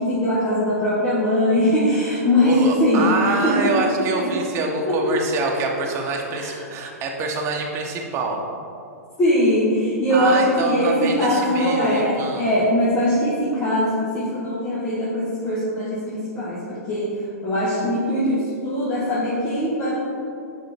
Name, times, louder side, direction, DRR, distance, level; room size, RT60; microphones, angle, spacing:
voice 1, 0.0-4.3 4.9-5.2 6.3-6.7 9.2-17.1 17.4-20.0, left 1 dB, 25° left, -8 dB, 1.6 m, -21 dB
voice 2, 2.4-8.4 10.1-12.4, right 3 dB, 30° right, 0 dB, 1.2 m, -25 dB
7.4 x 5.5 x 3.5 m, 2.6 s
hypercardioid pair, 115°, 9 cm